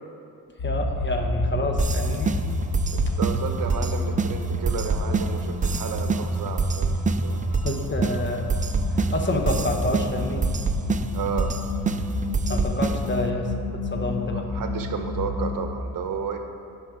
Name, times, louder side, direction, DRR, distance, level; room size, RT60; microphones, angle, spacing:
sound 1, 0.6-15.7, left 1 dB, 70° left, 1.8 m, -29 dB
voice 1, 0.6-2.4 7.6-8.6 8.9-10.5 12.5-14.5, left 1 dB, 30° left, 3 dB, 1.1 m, -28 dB
sound 2, 1.8-13.3, right 4 dB, 25° right, 0.4 m, -28 dB
voice 2, 2.9-7.4 11.1-11.5 14.3-16.4, right 6 dB, 70° right, 5 dB, 0.9 m, -32 dB
10.5 x 5.4 x 4.8 m, 2.6 s
cardioid pair, 95°, 35 cm